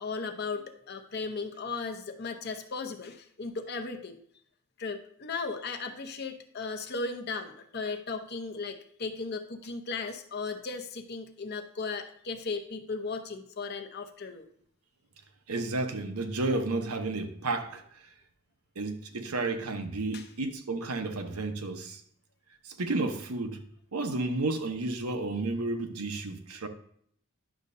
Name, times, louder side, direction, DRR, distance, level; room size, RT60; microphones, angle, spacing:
voice 1, 0.0-4.2 4.8-14.5 20.1-20.3, left 4 dB, 45° left, 0.7 m, -36 dB
voice 2, 15.5-17.8 18.8-22.0 22.6-23.6 23.9-26.7, right 2 dB, 85° right, 0.9 m, -32 dB
10.5 x 6.5 x 2.6 m
head